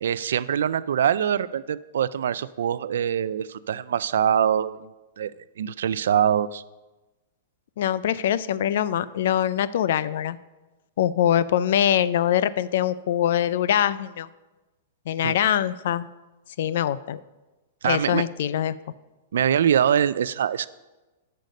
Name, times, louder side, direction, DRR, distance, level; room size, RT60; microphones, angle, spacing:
voice 1, 0.0-4.9 5.2-5.3 5.6-6.6 15.2-15.3 17.8-18.2 19.3-20.7, right 9 dB, 80° right, 17 dB, 0.4 m, -23 dB
voice 2, 7.8-10.4 11.0-14.3 15.1-16.1 16.6-17.2 17.8-18.7, left 10 dB, 55° left, 17 dB, 0.3 m, -23 dB
10.5 x 6.5 x 5.3 m, 1.1 s
supercardioid pair, 175°, 0 cm